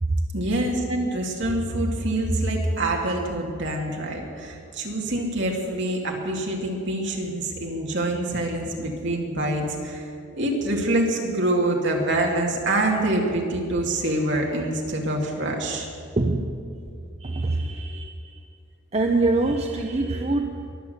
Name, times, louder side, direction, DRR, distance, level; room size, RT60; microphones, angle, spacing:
voice 1, 0.3-10.1 10.3-15.9, right 1 dB, 55° right, 0 dB, 2.4 m, -25 dB
voice 2, 16.2-16.7 17.2-18.4 18.9-20.7, right 2 dB, 30° right, 3 dB, 0.7 m, -25 dB
22.0 x 7.4 x 8.0 m, 2.4 s
head